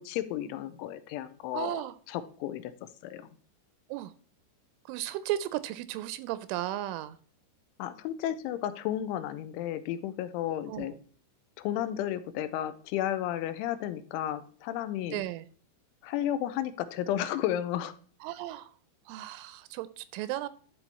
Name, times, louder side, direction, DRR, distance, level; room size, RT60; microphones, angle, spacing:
voice 1, 0.0-2.7 3.0-3.2 7.8-10.9 11.6-15.2 16.0-18.0, left 11 dB, 85° left, 12 dB, 3.0 m, -33 dB
voice 2, 1.5-1.9 3.9-4.1 4.9-7.2 10.7-10.9 15.1-15.4 18.2-18.7 19.1-20.5, right 14 dB, 85° right, 15 dB, 2.9 m, -35 dB
12.5 x 4.4 x 4.1 m, 0.43 s
omnidirectional pair, 5.6 m